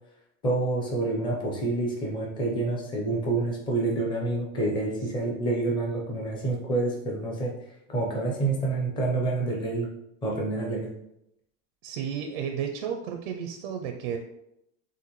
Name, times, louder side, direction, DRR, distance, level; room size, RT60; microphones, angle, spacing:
voice 1, 0.4-7.5 7.9-9.9 10.2-10.9, right 2 dB, 15° left, -1 dB, 0.6 m, -28 dB
voice 2, 11.8-14.2, right 8 dB, 45° right, 4 dB, 0.4 m, -32 dB
6.5 x 2.6 x 3.0 m, 0.81 s
supercardioid pair, 170°, 37 cm